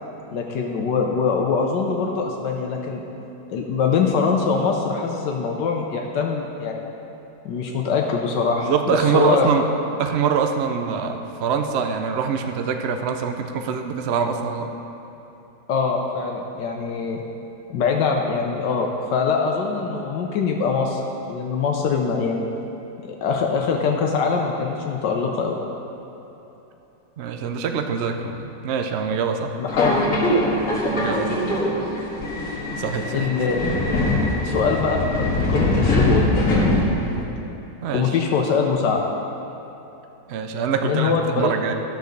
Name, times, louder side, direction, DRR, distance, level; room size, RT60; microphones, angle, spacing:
voice 1, 0.3-3.0 3.5-6.8 7.4-9.5 15.7-17.2 17.7-21.0 21.3-22.5 23.0-25.6 29.6-30.2 33.1-33.7 34.4-36.3 37.9-39.0 40.8-41.5, left 5 dB, 80° left, 1 dB, 1.4 m, -23 dB
voice 2, 8.6-9.6 10.0-14.7 27.2-29.5 30.9-31.4 32.8-33.3 37.8-38.0 40.3-41.7, right 6 dB, 65° right, 5 dB, 0.6 m, -24 dB
Subway metro underground, 29.7-37.2, left 1 dB, 50° left, 2.0 m, -22 dB
12.5 x 5.2 x 6.6 m, 3.0 s
omnidirectional pair, 1.9 m